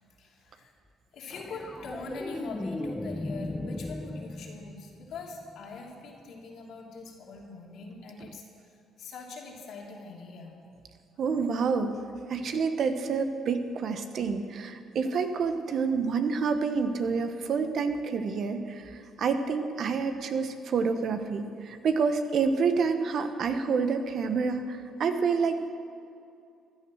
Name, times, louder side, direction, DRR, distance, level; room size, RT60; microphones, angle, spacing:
voice 1, 0.2-0.7 1.1-8.4 9.0-10.6 15.1-15.2, left 3 dB, 70° left, -1 dB, 2.8 m, -43 dB
sound 1, 1.3-5.8 8.2-8.4, left 2 dB, 15° left, 0.6 m, -37 dB
voice 2, 11.2-11.9 12.3-18.8 19.2-25.7, right 5 dB, 60° right, 8 dB, 1.1 m, -28 dB
15.5 x 11.0 x 6.3 m, 2.5 s
supercardioid pair, 60°, 0 cm